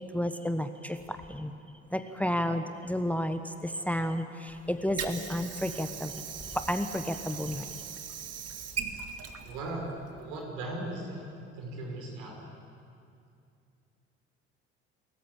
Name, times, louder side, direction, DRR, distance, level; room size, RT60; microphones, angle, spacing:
voice 1, 0.0-1.5 1.9-6.2 6.5-7.6, equal, 5° left, 9 dB, 1.2 m, -32 dB
Water / Sink (filling or washing), 4.5-10.5, right 7 dB, 45° right, 2.0 m, -40 dB
voice 2, 9.4-11.3 11.5-12.4, right 2 dB, 70° right, 0 dB, 5.4 m, -38 dB
28.0 x 14.0 x 8.6 m, 2.5 s
hypercardioid pair, 55°, 33 cm